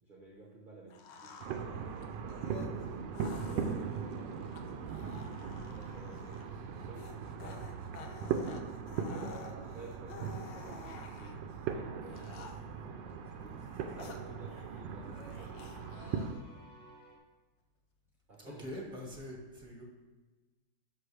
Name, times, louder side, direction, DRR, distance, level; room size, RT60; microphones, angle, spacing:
voice 1, 0.0-2.5 2.9-5.0 5.7-7.6 9.0-12.6 13.3-15.7 18.3-18.8, right 2 dB, 35° right, -2 dB, 1.0 m, -53 dB
sound 1, 0.9-11.5 12.1-12.9 13.4-14.8 15.1-16.6, left 5 dB, 75° left, 1.4 m, -51 dB
sound 2, 1.4-16.3, right 6 dB, 80° right, 1.3 m, -39 dB
sound 3, 5.9-10.3 11.7-17.2, equal, 40° left, 2.7 m, -62 dB
voice 2, 18.4-19.8, left 1 dB, 5° right, -2 dB, 1.5 m, -44 dB
11.0 x 6.2 x 3.3 m, 1.2 s
omnidirectional pair, 2.0 m